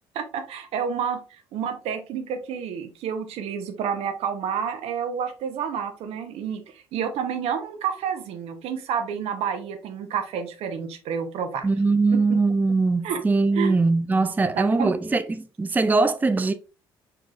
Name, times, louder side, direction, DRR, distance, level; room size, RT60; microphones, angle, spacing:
voice 1, 0.1-1.2 1.5-6.6 6.9-11.7 12.1-12.2 13.0-13.2 13.5-13.7 14.6-14.9, right 7 dB, 65° right, 0.9 m, -29 dB
voice 2, 11.6-16.5, right 3 dB, 15° right, 0.4 m, -21 dB
4.7 x 4.6 x 2.4 m
hypercardioid pair, 55°, 11 cm